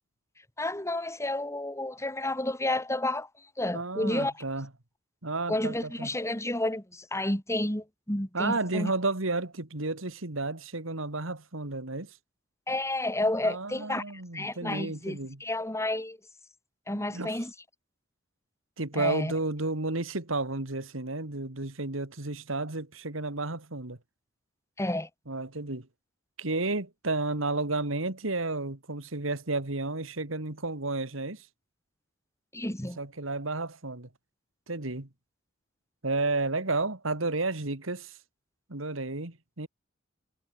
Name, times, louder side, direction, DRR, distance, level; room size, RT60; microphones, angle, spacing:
voice 1, 0.6-3.3 3.6-4.3 5.5-8.9 12.7-14.0 14.3-16.2 16.9-17.5 18.9-19.3 24.8-25.1 32.5-33.0, left 1 dB, 15° left, 5.0 m, -30 dB
voice 2, 3.7-4.7 5.2-6.1 8.3-12.1 13.4-15.4 16.9-17.4 18.8-24.0 25.3-25.9 26.4-31.5 33.0-34.1 34.7-35.1 36.0-38.2 38.7-39.7, right 2 dB, 75° right, 2.5 m, -32 dB
head